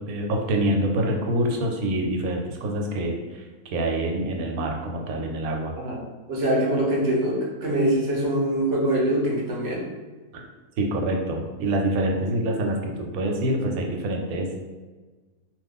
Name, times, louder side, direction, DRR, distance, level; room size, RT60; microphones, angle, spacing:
voice 1, 0.0-3.5 3.7-5.8 10.3-10.5 10.8-14.6, right 1 dB, 75° right, 1 dB, 1.0 m, -26 dB
voice 2, 6.3-9.8, right 1 dB, 55° right, -2 dB, 0.7 m, -23 dB
2.8 x 2.3 x 3.5 m, 1.3 s
omnidirectional pair, 1.6 m